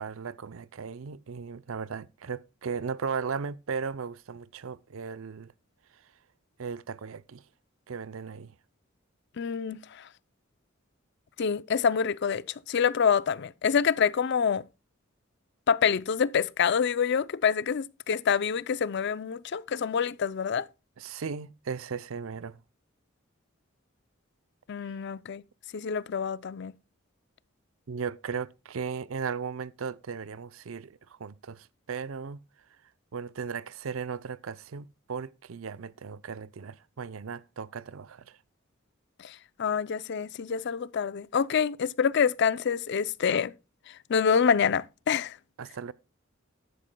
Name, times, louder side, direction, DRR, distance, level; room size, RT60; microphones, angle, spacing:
voice 1, 0.0-5.5 6.6-7.4 7.9-8.5 21.0-22.6 24.8-25.0 27.9-32.4 33.1-38.4 45.6-45.9, right 6 dB, 80° right, 0.5 m, -36 dB
voice 2, 9.4-10.1 11.4-14.6 15.7-20.7 24.7-25.4 25.7-26.7 39.2-43.5 43.9-45.4, left 6 dB, 60° left, 0.4 m, -27 dB
12.5 x 11.0 x 2.2 m
head